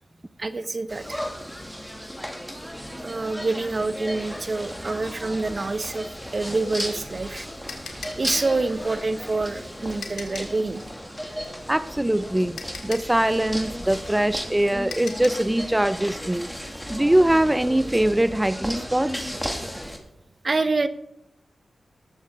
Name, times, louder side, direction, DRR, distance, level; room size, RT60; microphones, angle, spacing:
voice 1, 0.4-1.3 3.0-7.5 8.2-10.8 20.4-20.9, right 3 dB, 50° right, 12 dB, 0.8 m, -27 dB
sound 1, 0.9-20.0, equal, ahead, 2.0 m, -35 dB
sound 2, 7.7-10.6 12.0-12.1 12.6-15.5, left 5 dB, 85° left, 1.8 m, -40 dB
voice 2, 11.7-12.6 12.8-16.5 16.9-19.3, right 1 dB, 15° right, 12 dB, 0.5 m, -22 dB
19.5 x 7.1 x 3.5 m, 0.81 s
cardioid pair, 50°, 0 cm